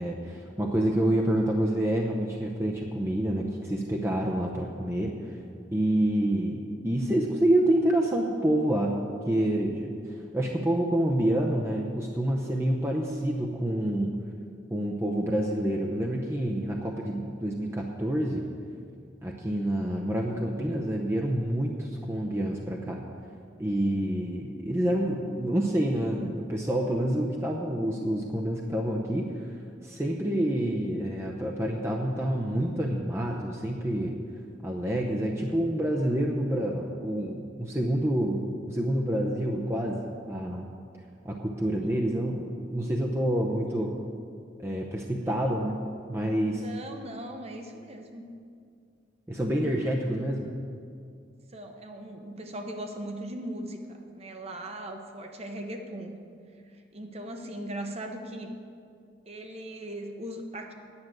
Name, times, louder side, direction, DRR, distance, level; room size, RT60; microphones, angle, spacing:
voice 1, 0.0-5.2 5.7-10.0 10.3-14.2 14.7-18.4 19.2-23.0 23.6-29.3 29.8-34.2 34.6-40.0 40.3-40.7 41.2-43.9 44.6-45.8 46.1-46.6 49.3-50.5, right 1 dB, 15° right, 0 dB, 0.7 m, -27 dB
voice 2, 43.7-44.1 45.2-45.6 46.4-48.2 51.5-56.2 56.7-58.5 59.3-60.7, right 1 dB, 35° right, 4 dB, 0.9 m, -39 dB
9.8 x 6.3 x 8.9 m, 2.3 s
head